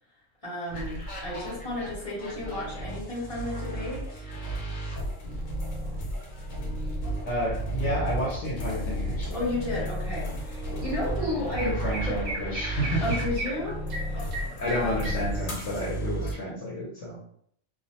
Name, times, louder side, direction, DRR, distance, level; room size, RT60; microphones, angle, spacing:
voice 1, 0.4-4.3 9.3-11.8 12.1-12.2 13.0-15.1, left 1 dB, 30° left, -7 dB, 1.0 m, -33 dB
sound 1, 0.7-16.3, right 1 dB, 90° left, 1.1 m, -33 dB
voice 2, 7.2-9.4 10.7-10.8 11.2-13.0 14.4-17.3, left 1 dB, 65° left, -5 dB, 1.0 m, -31 dB
Chirp tweet, 10.8-10.9 11.2-15.8, right 1 dB, 55° right, 0.7 m, -37 dB
2.5 x 2.0 x 2.8 m, 0.67 s
omnidirectional pair, 1.3 m